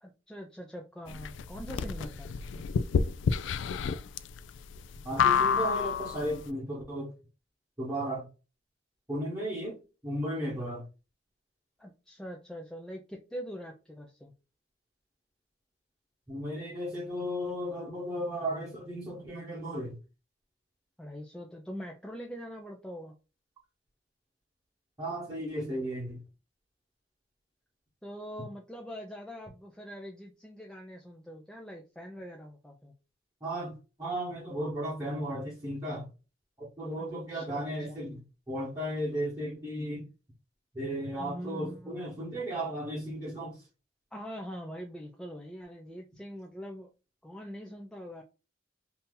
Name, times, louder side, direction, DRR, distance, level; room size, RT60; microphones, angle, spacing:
voice 1, 0.0-2.3 11.8-14.3 21.0-23.1 28.0-32.9 37.0-38.0 41.2-42.0 44.1-46.9 47.2-48.2, equal, 5° left, 0.4 m, -43 dB
sound 1, 1.1-6.4, left 6 dB, 80° left, 0.3 m, -29 dB
voice 2, 5.0-7.1 7.8-8.3 9.1-9.8 10.0-10.8 16.3-20.0 25.0-26.2 33.4-36.1 36.6-40.1 40.7-43.6, equal, 15° right, 1.1 m, -35 dB
2.8 x 2.7 x 3.6 m
head